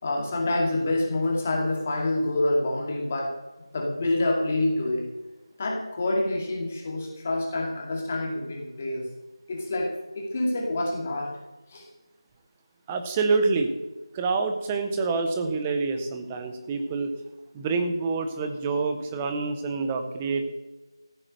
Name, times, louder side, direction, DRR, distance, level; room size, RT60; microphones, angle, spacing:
voice 1, 0.0-3.3 3.7-5.1 5.6-9.1 9.5-11.3 11.7-11.8, left 2 dB, 20° left, 0 dB, 2.2 m, -27 dB
voice 2, 12.9-13.7 14.1-17.1 17.5-20.4, right 4 dB, 10° right, 6 dB, 0.5 m, -27 dB
14.5 x 8.7 x 6.5 m, 1.1 s
figure-of-eight pair, 175°, 3 cm